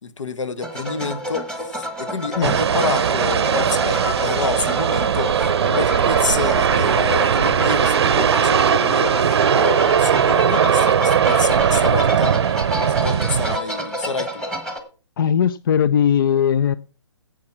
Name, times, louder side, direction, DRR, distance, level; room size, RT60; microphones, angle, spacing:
voice 1, 0.0-12.4 12.9-14.4, left 4 dB, 75° left, 1.4 m, -28 dB
sound 1, 0.6-14.8, equal, 5° left, 1.2 m, -29 dB
sound 2, 2.4-13.6, right 8 dB, 55° right, 0.7 m, -19 dB
voice 2, 15.2-16.8, left 8 dB, 45° left, 0.4 m, -18 dB
10.5 x 7.9 x 5.7 m
hypercardioid pair, 150°, 16 cm